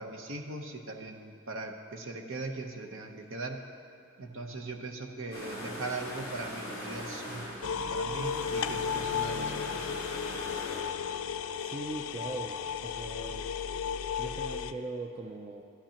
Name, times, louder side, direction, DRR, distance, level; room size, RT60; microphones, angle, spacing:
voice 1, 0.0-3.6 4.2-9.9, right 3 dB, 60° right, 4 dB, 0.8 m, -40 dB
sound 1, 5.3-10.8, left 1 dB, 15° left, 3.0 m, -41 dB
sound 2, 7.6-14.7, left 7 dB, 65° left, 0.4 m, -34 dB
voice 2, 11.6-13.5 14.2-15.6, right 2 dB, 25° right, 1 dB, 0.4 m, -40 dB
13.0 x 11.5 x 2.9 m, 2.4 s
head